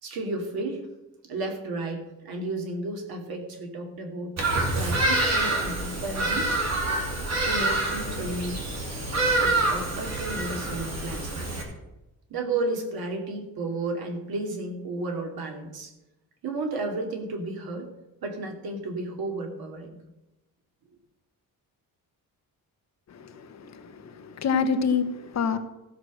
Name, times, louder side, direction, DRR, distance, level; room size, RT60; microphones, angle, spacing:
voice 1, 0.0-0.9 1.2-4.4 4.7-6.5 7.4-8.7 9.3-11.5 12.3-15.9 16.4-17.9 18.2-20.0, right 2 dB, 85° right, 3 dB, 2.7 m, -33 dB
Bird vocalization bird call bird song, 4.4-11.6, right 2 dB, 45° right, 2.7 m, -26 dB
voice 2, 23.1-25.6, left 5 dB, 50° left, 8 dB, 1.1 m, -27 dB
15.0 x 6.4 x 6.3 m, 0.96 s
wide cardioid pair, 175°, 35 cm